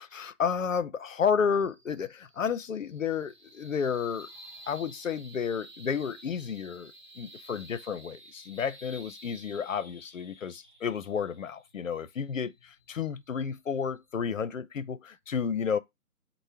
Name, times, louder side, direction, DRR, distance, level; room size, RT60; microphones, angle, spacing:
voice 1, 0.0-4.3 4.7-15.8, left 6 dB, 60° left, 0.5 m, -31 dB
sound 1, 1.5-14.2, right 1 dB, 30° right, 0.6 m, -52 dB
2.8 x 2.1 x 3.4 m
figure-of-eight pair, 170°, 46 cm